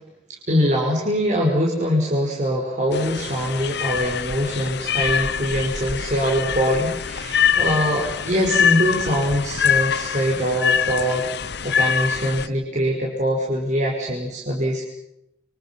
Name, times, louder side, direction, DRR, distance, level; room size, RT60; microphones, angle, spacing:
voice 1, 0.5-14.8, equal, 45° right, -2 dB, 5.1 m, -23 dB
sound 1, 2.9-12.5, left 7 dB, 65° left, 0.9 m, -24 dB
29.0 x 25.0 x 5.8 m, 0.81 s
head